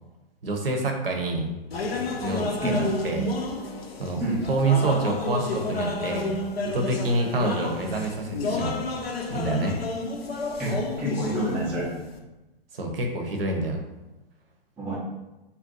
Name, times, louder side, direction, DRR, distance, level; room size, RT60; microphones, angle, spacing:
voice 1, 0.4-1.5 2.2-2.7 3.0-3.3 4.0-4.2 4.5-6.4 6.7-8.7 9.3-9.7 12.7-13.8, right 2 dB, 70° right, 3 dB, 0.7 m, -27 dB
sound 1, 1.7-12.2, left 2 dB, 80° left, 0.5 m, -31 dB
voice 2, 10.6-11.9 14.8-15.0, right 1 dB, 5° right, -8 dB, 0.3 m, -28 dB
2.6 x 2.2 x 3.8 m, 1.0 s
figure-of-eight pair, 115°, 30 cm